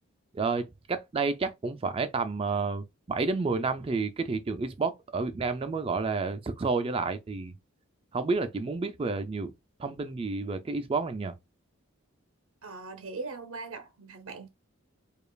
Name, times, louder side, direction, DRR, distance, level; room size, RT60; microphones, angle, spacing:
voice 1, 0.3-7.5 8.1-9.5 9.8-11.3, right 4 dB, 25° right, 0.3 m, -30 dB
voice 2, 12.6-14.5, right 3 dB, 75° right, 0.6 m, -40 dB
5.0 x 2.4 x 2.2 m
head